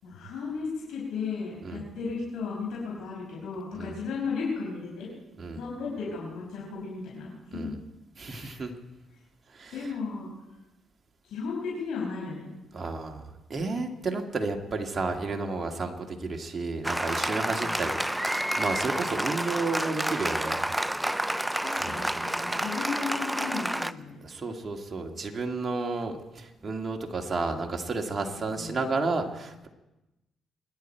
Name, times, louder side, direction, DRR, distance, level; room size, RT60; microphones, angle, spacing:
voice 1, 0.0-5.1 5.5-7.7 8.2-8.6 9.7-10.3 11.2-12.5 17.4-18.2 21.6-24.2 28.2-28.9, left 4 dB, 85° left, -4 dB, 5.6 m, -35 dB
voice 2, 8.2-8.7 9.5-9.7 12.7-20.6 21.8-22.0 22.5-22.6 24.2-29.7, right 3 dB, 35° right, 3 dB, 2.0 m, -32 dB
Applause, 16.8-23.9, right 1 dB, 5° right, 0.5 m, -29 dB
26.0 x 10.5 x 4.5 m, 0.99 s
cardioid pair, 90°, 0 cm